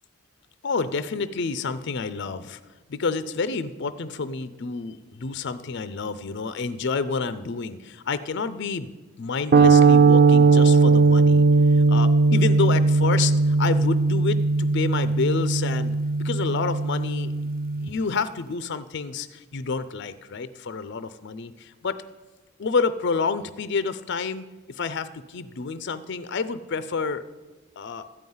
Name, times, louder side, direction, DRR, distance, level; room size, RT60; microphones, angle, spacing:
voice 1, 0.6-2.6 2.9-8.9 9.2-17.5 17.8-22.0 22.6-27.2 27.8-28.0, left 4 dB, 50° left, 13 dB, 0.4 m, -29 dB
sound 1, 9.5-17.9, right 3 dB, 40° right, 0.4 m, -18 dB
13.5 x 5.5 x 9.3 m, 1.3 s
head